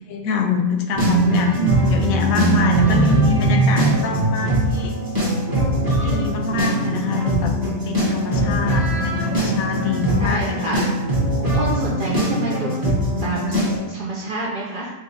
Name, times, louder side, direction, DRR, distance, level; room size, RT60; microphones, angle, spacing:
voice 1, 0.1-5.0 5.7-7.5 7.8-10.8, left 5 dB, 90° left, 4 dB, 1.0 m, -25 dB
sound 1, 0.9-13.8, right 1 dB, 20° right, 0.8 m, -20 dB
voice 2, 10.2-10.9 11.4-12.8 13.2-13.6 13.9-14.9, right 2 dB, 65° right, -5 dB, 0.5 m, -28 dB
4.9 x 2.8 x 2.6 m, 1.1 s
omnidirectional pair, 1.4 m